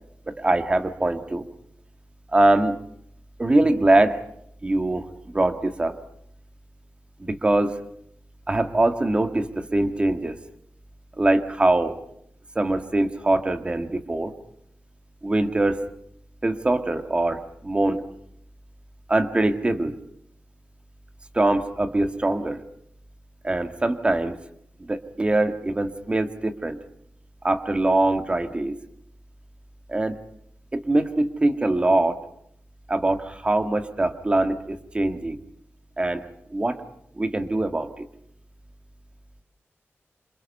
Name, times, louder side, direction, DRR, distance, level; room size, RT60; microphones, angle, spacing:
voice 1, 0.3-1.5 2.3-2.8 3.4-4.2 4.6-5.1 5.3-6.0 7.2-7.8 8.5-10.4 11.2-12.0 12.6-14.3 15.2-15.8 16.4-18.0 19.1-20.0 21.3-22.6 23.4-24.4 24.8-26.8 27.4-28.8 29.9-30.2 30.7-32.2 32.9-35.4 36.0-36.8 37.2-38.1, right 2 dB, 25° right, 8 dB, 1.8 m, -23 dB
28.0 x 27.0 x 5.5 m, 0.71 s
wide cardioid pair, 155°, 5 cm